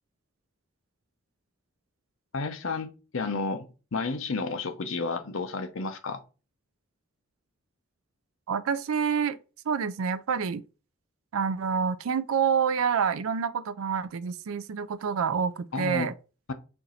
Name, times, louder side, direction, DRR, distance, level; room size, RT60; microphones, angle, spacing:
voice 1, 2.3-6.2 15.7-16.1, left 4 dB, 70° left, 0.7 m, -31 dB
voice 2, 8.5-9.4 9.7-10.6 11.3-16.1, right 6 dB, 80° right, 0.4 m, -27 dB
4.4 x 2.5 x 4.1 m
head